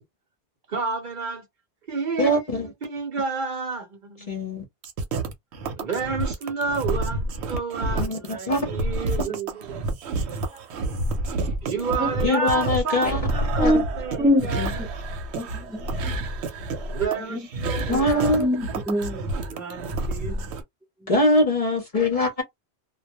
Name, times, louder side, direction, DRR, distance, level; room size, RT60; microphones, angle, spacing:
voice 1, 0.7-1.5 1.9-4.3 5.8-9.8 11.6-14.9 16.9-18.4 19.5-20.5, right 5 dB, 50° right, 0.8 m, -30 dB
voice 2, 2.2-2.7 4.3-4.6 8.0-8.6 9.2-9.3 12.2-13.2 13.6-13.8 14.6-14.7 17.8-18.5 21.1-22.4, left 1 dB, 40° left, 0.6 m, -22 dB
sound 1, 4.8-20.6, right 2 dB, 85° right, 0.9 m, -29 dB
voice 3, 15.3-16.2 17.3-17.4 17.9-18.0 18.3-19.6 20.3-20.4 21.0-21.1, left 1 dB, 5° right, 0.4 m, -25 dB
2.2 x 2.1 x 2.8 m
omnidirectional pair, 1.1 m